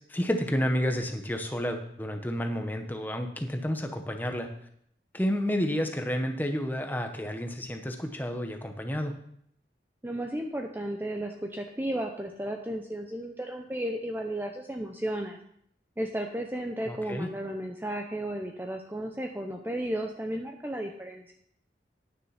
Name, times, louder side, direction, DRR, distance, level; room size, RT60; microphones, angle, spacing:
voice 1, 0.0-4.5 5.1-9.1 16.9-17.3, equal, 10° left, 5 dB, 0.9 m, -30 dB
voice 2, 10.0-15.4 16.0-21.3, right 1 dB, 10° right, 3 dB, 0.6 m, -34 dB
9.6 x 6.6 x 5.7 m, 0.69 s
head